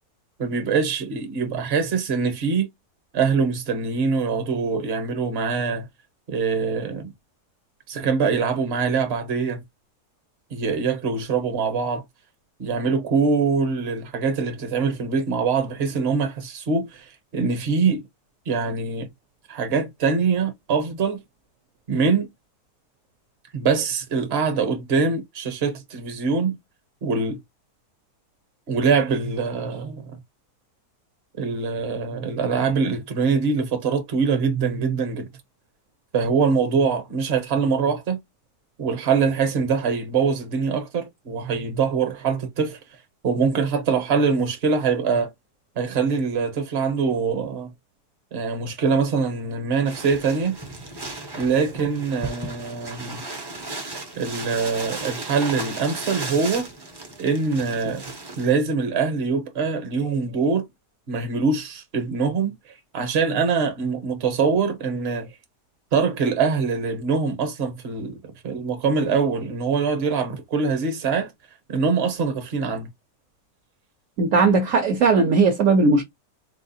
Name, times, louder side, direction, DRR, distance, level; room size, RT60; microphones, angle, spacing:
voice 1, 0.4-2.7 3.1-5.9 6.3-7.1 7.9-9.6 10.5-12.0 12.6-18.0 18.5-19.1 19.5-21.2 21.9-22.3 23.5-26.6 27.0-27.4 28.7-30.0 31.4-35.3 36.1-38.2 38.8-42.8 43.2-45.3 45.8-47.7 48.3-50.6 51.4-53.2 54.2-56.7 57.2-58.0 58.4-60.7 61.1-62.5 62.9-65.3 65.9-68.2 68.4-71.3 71.7-72.9, right 5 dB, 45° right, 1.0 m, -23 dB
sound 1, 49.8-58.5, right 2 dB, 25° right, 0.5 m, -35 dB
voice 2, 74.2-76.0, right 4 dB, 65° right, 1.0 m, -18 dB
4.0 x 2.3 x 2.7 m
omnidirectional pair, 1.7 m